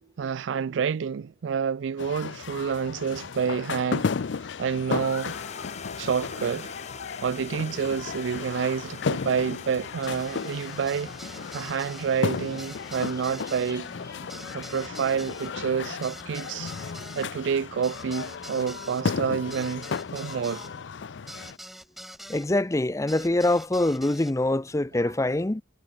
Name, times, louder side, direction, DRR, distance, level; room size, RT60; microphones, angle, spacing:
voice 1, 0.2-4.1 4.6-5.4 6.0-6.8 7.2-13.9 14.5-20.6 25.0-25.1, right 6 dB, 80° right, 0.4 m, -29 dB
sound 1, 2.0-21.6, left 5 dB, 75° left, 0.5 m, -34 dB
sound 2, 4.7-19.2, left 5 dB, 40° left, 4.1 m, -46 dB
sound 3, 10.0-22.5 23.1-24.3, equal, ahead, 3.0 m, -45 dB
voice 2, 22.3-25.6, left 1 dB, 15° left, 0.6 m, -24 dB
head